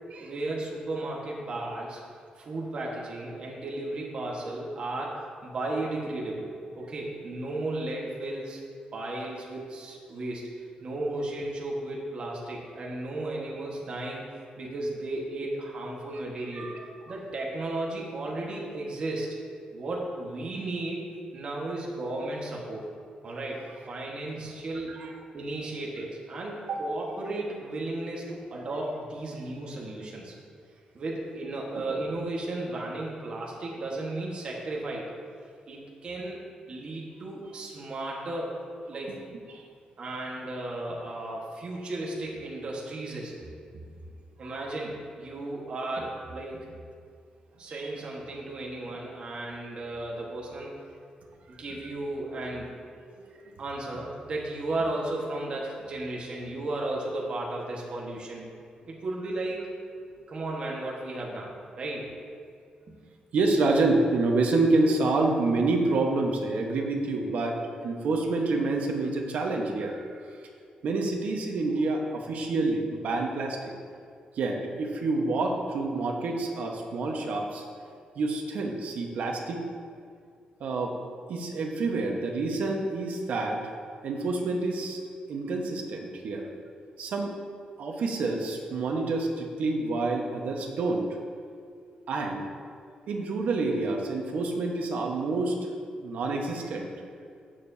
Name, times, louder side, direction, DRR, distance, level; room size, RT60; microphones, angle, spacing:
voice 1, 0.2-2.0 2.3-6.5 6.7-8.6 8.9-10.5 10.8-14.3 14.6-16.7 17.1-19.4 19.7-21.0 21.3-22.9 23.2-25.0 25.3-30.3 30.9-35.1 35.7-39.2 40.0-43.5 44.4-46.8 47.6-50.7 51.5-52.7 53.6-58.5 58.9-59.7 60.3-62.1 62.9-63.0, right 2 dB, 40° right, -3 dB, 1.4 m, -34 dB
voice 2, 16.5-16.8 24.9-25.1 26.7-26.8 39.5-39.6 44.4-44.7 47.7-47.9 53.1-53.5 63.3-70.1 70.8-73.7 74.3-77.6 78.1-79.6 80.6-81.0 81.3-83.7 84.0-85.0 85.3-86.5 87.0-87.3 87.8-91.1 92.1-92.5 93.1-95.6 96.0-96.9, right 3 dB, 65° right, 1 dB, 1.2 m, -28 dB
16.5 x 6.8 x 2.8 m, 2.2 s
wide cardioid pair, 180°, 3 cm